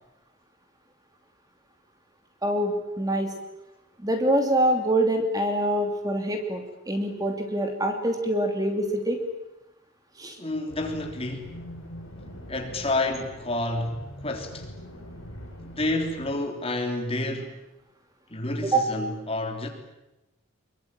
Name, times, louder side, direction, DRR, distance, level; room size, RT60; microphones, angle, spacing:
voice 1, 2.4-3.3 4.0-9.2 10.2-10.4 18.6-18.9, right 1 dB, 20° right, 2.8 m, -25 dB
voice 2, 10.4-11.5 12.5-14.7 15.6-17.5 18.3-19.7, left 2 dB, 30° left, 3.4 m, -29 dB
sound 1, 10.7-16.3, equal, 80° left, 7.7 m, -43 dB
25.0 x 23.5 x 8.9 m
head